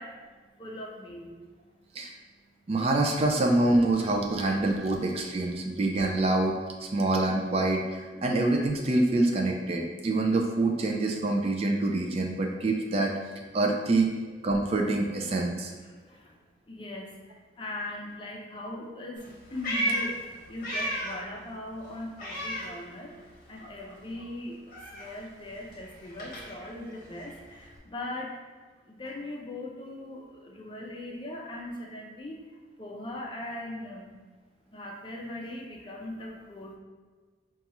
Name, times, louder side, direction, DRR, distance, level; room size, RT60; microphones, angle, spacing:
voice 1, 0.0-2.7 8.1-8.2 15.8-16.4 16.7-28.4 28.8-32.5 32.8-34.1 34.7-36.8, left 1 dB, 25° left, -1 dB, 0.5 m, -40 dB
voice 2, 2.7-13.1 13.5-14.1 14.4-15.7, right 2 dB, 35° right, 1 dB, 0.4 m, -26 dB
Meow, 19.2-21.3 21.6-23.3 23.6-27.8, right 1 dB, 50° left, 0.9 m, -35 dB
5.2 x 2.3 x 2.9 m, 1.4 s
head